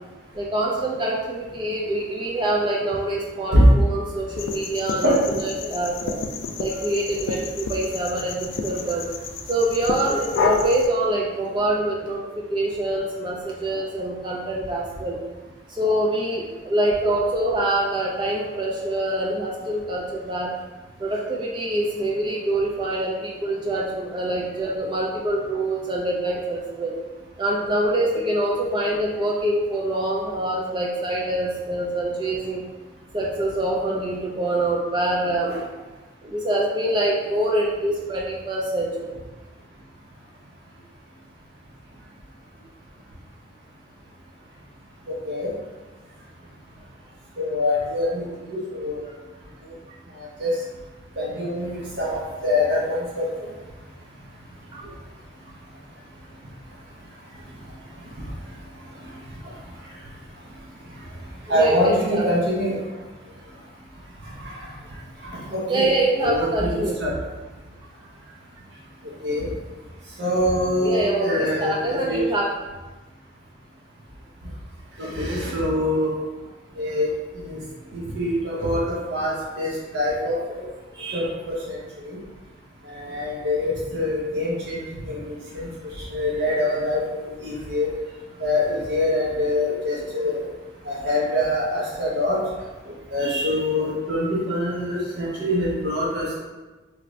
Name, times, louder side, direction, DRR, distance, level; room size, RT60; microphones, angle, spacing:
voice 1, 0.3-6.2 6.6-9.0 9.5-12.2 12.5-15.2 15.7-20.5 21.0-27.0 27.4-32.6 33.1-35.6 36.2-39.1 54.7-54.8 61.5-62.5 65.7-67.0 70.8-72.5, right 1 dB, 25° right, -3 dB, 0.3 m, -25 dB
sound 1, 4.4-10.9, left 4 dB, 80° left, 0.3 m, -30 dB
voice 2, 47.4-49.0 50.4-50.5 51.2-53.3 61.5-62.8 65.3-65.9 66.2-67.1 69.2-69.5 70.2-72.3 75.0-76.1 76.8-77.1 77.4-77.6 78.1-80.6 81.0-81.8 82.0-82.1 82.9-84.8 85.1-85.2 85.5-85.7 86.1-87.9 88.4-90.4 90.9-92.4 93.1-96.3, left 1 dB, 60° right, -5 dB, 0.7 m, -24 dB
3.3 x 2.5 x 3.0 m, 1.2 s
head